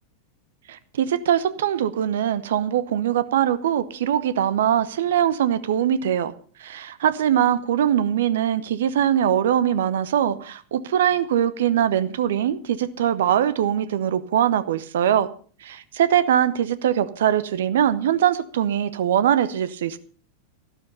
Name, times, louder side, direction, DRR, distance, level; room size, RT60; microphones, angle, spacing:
voice 1, 0.7-6.3 6.6-15.3 15.6-20.0, right 10 dB, 60° right, 0.9 m, -22 dB
13.0 x 12.0 x 5.4 m
figure-of-eight pair, 90°, 0 cm